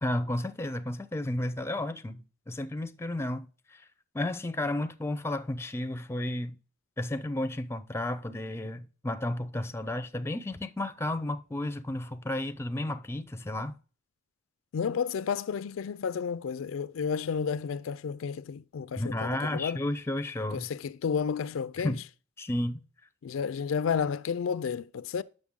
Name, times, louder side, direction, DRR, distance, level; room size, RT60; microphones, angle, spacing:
voice 1, 0.0-3.8 4.1-6.6 7.0-13.7 19.0-20.7 21.8-22.0 22.4-22.8, left 1 dB, 15° left, 0.5 m, -32 dB
voice 2, 14.7-19.8 20.5-22.0 23.2-25.2, left 6 dB, 85° left, 0.4 m, -31 dB
8.5 x 6.6 x 3.6 m
head